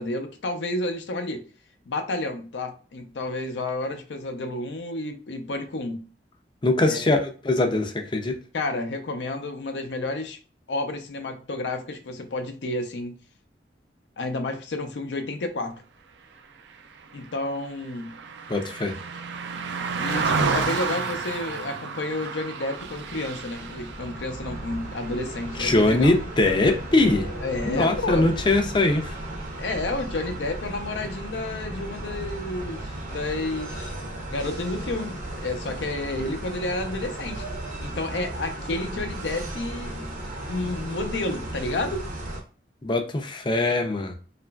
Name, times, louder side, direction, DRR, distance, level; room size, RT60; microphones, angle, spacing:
voice 1, 0.0-1.4 1.9-6.1 6.9-7.0 8.5-10.4 10.7-13.2 14.2-15.8 17.1-18.2 20.0-26.1 27.4-28.3 29.6-33.9 34.3-37.5 37.8-40.2 40.5-42.0, left 2 dB, 85° left, 7 dB, 0.5 m, -30 dB
voice 2, 6.6-8.4 18.5-18.9 25.6-27.3 27.7-29.2 42.8-44.1, left 2 dB, 25° left, 4 dB, 0.4 m, -22 dB
Car passing by, 16.7-26.2 26.6-26.8, right 4 dB, 80° right, 0.3 m, -31 dB
sound 1, 22.7-42.4, right 1 dB, 50° right, 0.7 m, -35 dB
2.9 x 2.5 x 2.2 m, 0.38 s
head